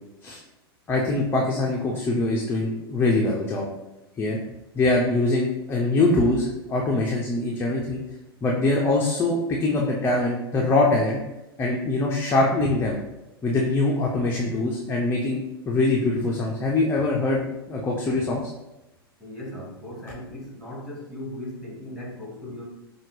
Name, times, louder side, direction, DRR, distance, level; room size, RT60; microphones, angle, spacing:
voice 1, 0.9-3.7 4.2-4.4 4.7-8.0 8.4-11.2 11.6-13.0 13.4-17.4 17.7-18.4, left 2 dB, 15° left, -2 dB, 0.5 m, -23 dB
voice 2, 19.2-22.6, left 1 dB, ahead, -4 dB, 1.4 m, -37 dB
5.6 x 2.3 x 3.2 m, 0.96 s
figure-of-eight pair, 95°, 13 cm